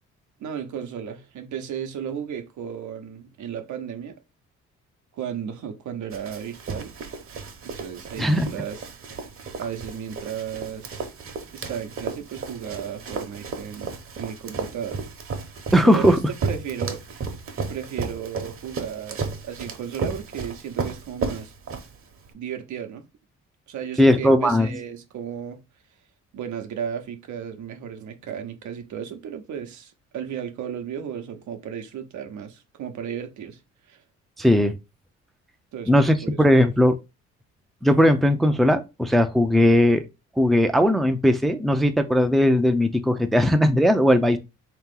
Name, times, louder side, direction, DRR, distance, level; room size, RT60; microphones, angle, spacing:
voice 1, 0.4-4.2 5.1-6.9 7.6-8.8 9.6-11.1 11.5-15.0 15.8-17.0 17.7-21.5 22.3-23.0 23.7-25.6 26.3-33.6 33.9-34.0 35.7-35.9 36.2-36.4 36.8-36.9, right 8 dB, 75° right, 0.8 m, -34 dB
Run, 6.1-22.3, right 4 dB, 45° right, 1.0 m, -33 dB
voice 2, 15.7-16.2 24.0-24.7 34.4-34.7 35.9-36.9 37.8-40.0 40.4-44.4, equal, ahead, 0.5 m, -18 dB
3.7 x 3.0 x 3.7 m
cardioid pair, 90°, 30 cm